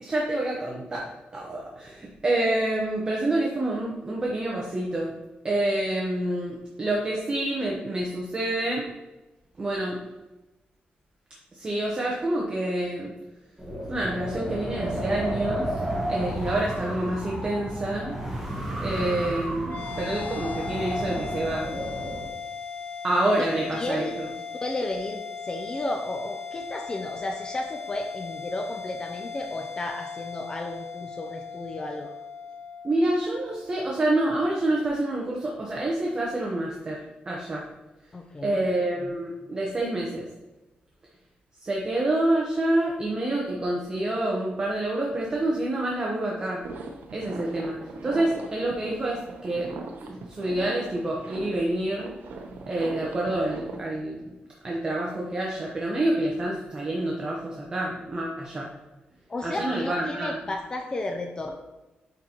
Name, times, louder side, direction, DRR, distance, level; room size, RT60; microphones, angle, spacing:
voice 1, 0.0-5.1 5.4-8.8 9.6-10.0 11.5-13.1 13.9-15.8 16.1-18.1 18.8-21.7 23.0-24.3 32.8-37.0 37.3-37.6 38.4-40.3 41.6-46.6 47.1-47.8 48.0-49.7 50.1-52.1 52.7-54.2 54.6-58.7 59.4-60.4, right 1 dB, 25° right, -2 dB, 0.9 m, -27 dB
Wind, 13.6-22.3, right 1 dB, 5° right, 1.4 m, -32 dB
sound 1, 19.7-34.3, left 6 dB, 80° left, 0.7 m, -38 dB
voice 2, 23.7-24.1 24.6-32.1 38.1-38.6 59.3-61.6, left 2 dB, 25° left, 3 dB, 0.5 m, -33 dB
sound 2, 46.6-53.8, right 3 dB, 85° right, 0.8 m, -40 dB
9.1 x 4.0 x 2.9 m, 1.1 s
wide cardioid pair, 145°, 3 cm